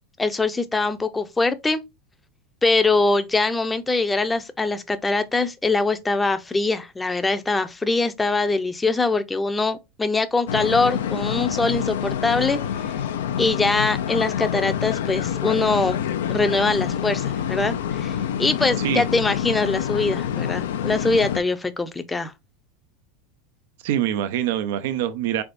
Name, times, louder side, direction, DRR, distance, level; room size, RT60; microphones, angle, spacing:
voice 1, 0.2-1.8 2.6-12.6 13.4-16.0 16.3-22.3, left 3 dB, 10° left, 0.5 m, -23 dB
sound 1, 10.5-21.4, left 9 dB, 80° left, 0.4 m, -27 dB
voice 2, 23.8-25.4, right 11 dB, 70° right, 0.4 m, -24 dB
3.8 x 3.4 x 2.5 m
supercardioid pair, 115°, 0 cm